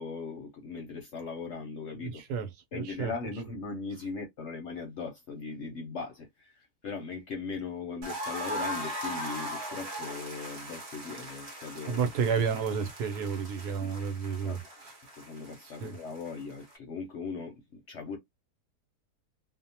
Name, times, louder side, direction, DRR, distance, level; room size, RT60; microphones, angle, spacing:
voice 1, 0.0-2.2 2.7-6.5 6.8-12.0 13.8-13.9 14.4-14.6 15.2-18.2, left 4 dB, 60° left, 0.8 m, -39 dB
voice 2, 2.0-3.1 11.9-14.9 15.8-15.9, right 6 dB, 75° right, 1.1 m, -31 dB
sound 1, 8.0-16.8, equal, 50° right, 0.9 m, -40 dB
2.7 x 2.0 x 2.7 m
omnidirectional pair, 1.7 m